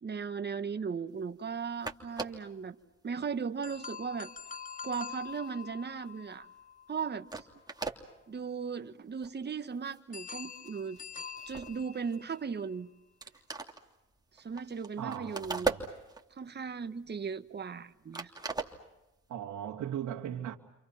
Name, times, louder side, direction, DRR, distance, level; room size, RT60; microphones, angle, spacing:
voice 1, 0.0-2.8 3.0-4.3 4.8-6.5 6.9-7.5 8.3-11.0 11.5-12.9 14.3-15.7 16.4-18.3, right 6 dB, 35° right, 1.6 m, -37 dB
sound 1, 1.5-1.6 1.8-2.5 3.2-3.4 3.7-6.1 6.4-6.6 7.0-7.1 7.3-8.0 8.7-8.8 9.1-9.3 9.7-10.1 10.4-12.6 12.9-13.0 13.2-16.4 16.8-17.9 18.1-19.3, right 3 dB, 15° right, 2.9 m, -39 dB
sound 2, 3.6-7.7 10.1-12.5, left 6 dB, 25° left, 0.8 m, -45 dB
voice 2, 15.0-15.8 19.3-20.6, right 10 dB, 75° right, 2.4 m, -38 dB
30.0 x 28.0 x 5.9 m
cardioid pair, 90°, 30 cm